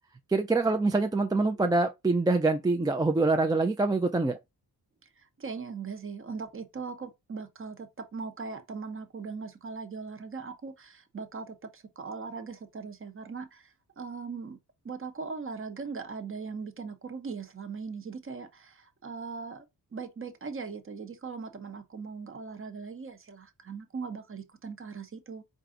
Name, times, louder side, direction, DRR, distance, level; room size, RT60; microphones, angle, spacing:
voice 1, 0.3-4.4, right 3 dB, 10° right, 0.3 m, -25 dB
voice 2, 5.2-14.6 14.8-19.7 19.9-25.4, right 5 dB, 35° right, 0.8 m, -39 dB
4.6 x 2.5 x 3.8 m
wide cardioid pair, 130°, 38 cm